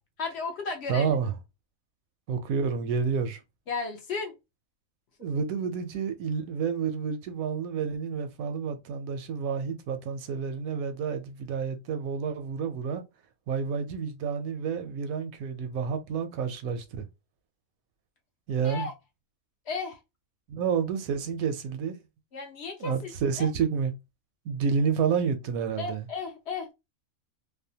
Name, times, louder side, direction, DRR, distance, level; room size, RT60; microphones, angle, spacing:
voice 1, 0.2-1.2 3.7-4.3 18.6-18.9 19.7-20.0 22.3-23.1 23.4-23.5 25.8-26.7, left 4 dB, 65° left, 0.7 m, -34 dB
voice 2, 0.9-1.3 2.3-3.4 5.2-13.0 13.5-17.1 18.5-18.9 20.5-22.0 22.8-23.9 24.5-26.0, right 6 dB, 85° right, 1.0 m, -29 dB
2.7 x 2.1 x 2.7 m
omnidirectional pair, 1.4 m